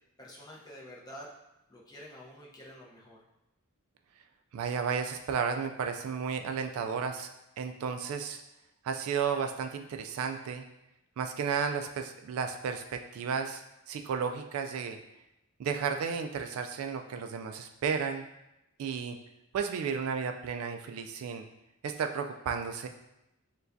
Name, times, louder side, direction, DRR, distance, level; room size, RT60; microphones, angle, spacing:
voice 1, 0.2-1.3 1.7-3.2, equal, 20° left, -4 dB, 0.7 m, -48 dB
voice 2, 4.5-7.3 7.6-8.4 8.8-10.6 11.2-15.0 15.6-18.2 18.8-19.2 19.5-21.4 21.8-22.9, right 6 dB, 75° right, 6 dB, 0.3 m, -33 dB
6.8 x 2.3 x 2.6 m, 0.89 s
head